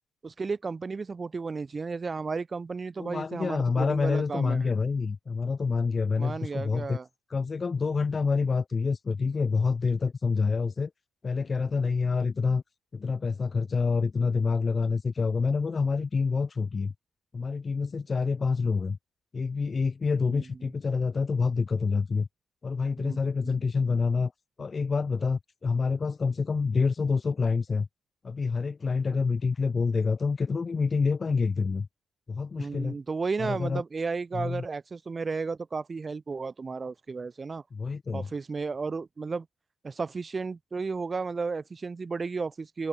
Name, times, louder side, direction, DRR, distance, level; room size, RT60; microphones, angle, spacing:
voice 1, 0.2-4.7 6.2-7.1 20.3-20.4 23.0-23.6 32.6-37.6 38.1-39.5 39.8-42.9, right 4 dB, 30° right, 3.8 m, -33 dB
voice 2, 3.0-7.0 7.3-10.9 11.2-12.6 12.9-16.9 17.3-19.0 19.3-22.3 22.6-24.3 24.6-27.9 28.2-31.9 32.3-32.9 33.4-33.8 34.3-34.6 37.7-38.3, left 4 dB, 35° left, 1.2 m, -27 dB
cardioid pair, 90°, 0 cm